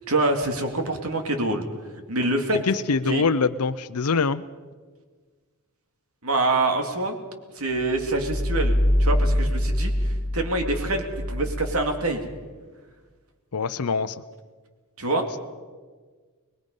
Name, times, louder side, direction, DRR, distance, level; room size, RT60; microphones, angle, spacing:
voice 1, 0.1-1.6 2.1-2.6 3.1-3.3 6.2-7.2 7.6-8.7 9.0-12.2 15.0-15.3, right 2 dB, 70° right, 5 dB, 2.5 m, -25 dB
voice 2, 2.6-4.4 13.5-14.2, left 4 dB, 85° left, 10 dB, 0.6 m, -24 dB
sound 1, 7.9-12.4, equal, 35° left, 1.5 m, -24 dB
25.0 x 21.0 x 5.4 m, 1.5 s
head